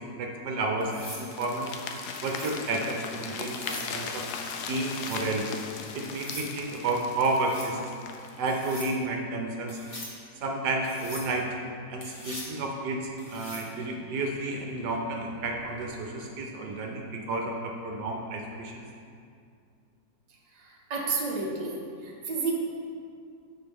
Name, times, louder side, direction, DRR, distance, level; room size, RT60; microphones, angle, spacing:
voice 1, 0.0-1.7 2.2-4.3 4.7-5.5 5.9-7.9 8.4-9.8 10.4-11.6 11.9-18.8, right 2 dB, 70° right, 1 dB, 1.3 m, -31 dB
sound 1, 0.8-1.3 2.1-2.6 3.4-3.9 4.8-5.2 6.0-6.5 7.2-7.7 8.5-8.9 9.7-10.1 10.8-11.3 12.0-12.5 13.2-13.7 15.6-15.9, left 1 dB, 20° left, 1.1 m, -42 dB
sound 2, 1.2-8.4, left 5 dB, 70° left, 1.1 m, -38 dB
voice 2, 20.6-21.8 22.0-22.5, right 4 dB, 30° right, -3 dB, 1.0 m, -31 dB
11.0 x 4.7 x 3.5 m, 2.4 s
omnidirectional pair, 1.9 m